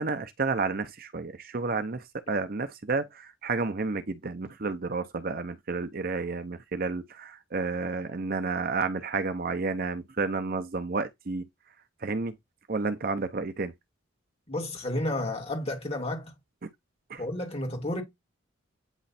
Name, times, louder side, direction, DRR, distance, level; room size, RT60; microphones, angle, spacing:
voice 1, 0.0-11.4 12.0-12.3 12.7-13.7 16.6-16.7 17.1-17.2, right 4 dB, 45° right, 0.7 m, -31 dB
voice 2, 14.5-16.3 17.2-18.0, left 1 dB, 30° left, 2.2 m, -31 dB
9.0 x 3.1 x 4.2 m
head